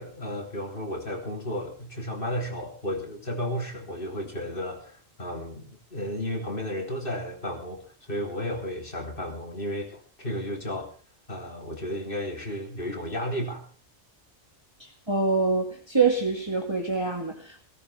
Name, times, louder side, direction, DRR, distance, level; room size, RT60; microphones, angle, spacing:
voice 1, 0.0-10.9 11.3-13.6, equal, 50° left, 3.5 m, -33 dB
voice 2, 15.1-17.6, right 4 dB, 25° right, 2.2 m, -25 dB
18.0 x 17.5 x 3.5 m
omnidirectional pair, 1.2 m